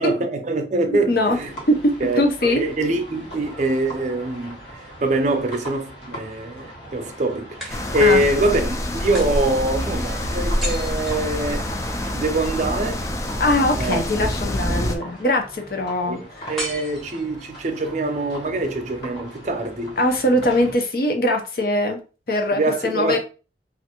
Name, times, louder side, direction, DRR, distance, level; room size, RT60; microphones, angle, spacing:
voice 1, 0.0-1.5 2.0-4.6 5.0-11.7 12.1-13.0 13.8-14.0 16.0-16.2 16.5-20.0 22.5-23.2, right 2 dB, 40° right, 0.5 m, -24 dB
voice 2, 0.9-1.4 1.7-1.8 2.2-2.6 8.0-8.2 13.4-16.2 20.0-22.0 22.3-23.2, left 1 dB, 55° left, 0.6 m, -21 dB
sound 1, 1.3-20.7, equal, 75° left, 1.7 m, -40 dB
sound 2, 4.5-5.6 7.6-8.4 9.1-12.0 16.6-17.6, equal, ahead, 0.9 m, -36 dB
sound 3, 7.7-15.0, left 1 dB, 15° left, 0.3 m, -26 dB
3.1 x 2.5 x 2.9 m
head